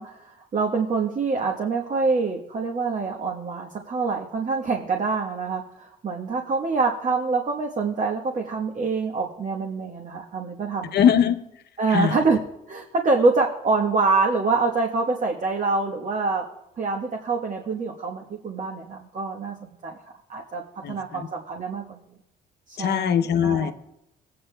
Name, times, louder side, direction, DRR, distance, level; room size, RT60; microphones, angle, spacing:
voice 1, 0.0-11.0 11.8-12.4 12.7-16.4 16.8-20.0 20.3-20.6 20.9-22.0 22.7-23.7, right 4 dB, 40° right, 1.2 m, -25 dB
voice 2, 10.9-11.4 11.9-12.2 20.8-21.2 22.8-23.7, left 8 dB, 60° left, 0.7 m, -21 dB
16.0 x 8.7 x 2.2 m
supercardioid pair, 70°, 20 cm